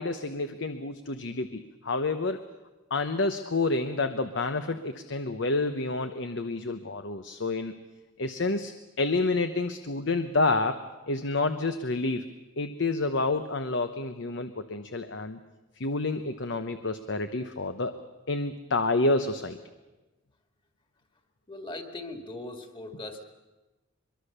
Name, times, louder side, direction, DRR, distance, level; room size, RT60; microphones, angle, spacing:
voice 1, 0.0-2.4 2.9-7.7 8.2-10.8 11.1-12.2 12.6-15.4 15.8-17.9 18.3-19.6, left 3 dB, 60° left, 9 dB, 0.9 m, -29 dB
voice 2, 21.5-23.2, left 2 dB, 25° left, 5 dB, 2.1 m, -39 dB
23.5 x 23.0 x 6.8 m, 1.1 s
head